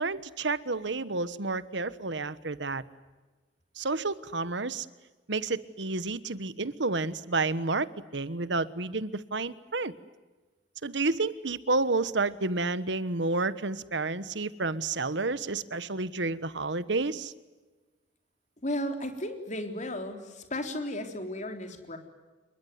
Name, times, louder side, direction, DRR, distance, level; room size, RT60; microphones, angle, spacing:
voice 1, 0.0-2.8 3.8-4.8 5.3-7.9 8.1-9.9 10.8-17.3, right 3 dB, 70° right, 15 dB, 1.3 m, -30 dB
voice 2, 18.6-22.0, left 1 dB, 40° left, 6 dB, 3.7 m, -34 dB
27.0 x 23.0 x 9.5 m, 1.2 s
head